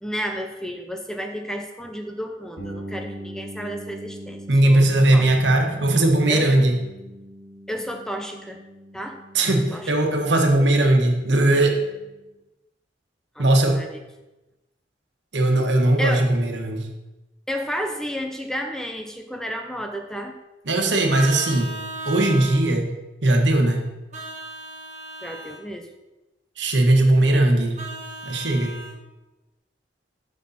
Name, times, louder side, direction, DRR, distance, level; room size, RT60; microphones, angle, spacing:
voice 1, 0.0-5.3 6.3-6.5 7.7-8.6 8.9-9.2 9.7-9.9 13.4-13.5 13.7-14.0 16.0-16.3 17.5-20.4 25.2-25.9, equal, 5° left, 4 dB, 0.7 m, -31 dB
sound 1, 2.6-12.3, equal, 85° left, 2.3 m, -41 dB
voice 2, 4.5-6.8 9.3-11.8 13.4-13.8 15.3-16.9 20.7-21.7 22.0-22.9 23.2-23.9 26.6-27.7 28.2-28.8, right 1 dB, 80° right, 3 dB, 1.5 m, -19 dB
Vehicle horn car horn honking, 21.1-22.6 24.1-25.6 27.8-29.0, right 1 dB, 40° right, 1.6 m, -35 dB
12.0 x 6.3 x 4.3 m, 1.0 s
head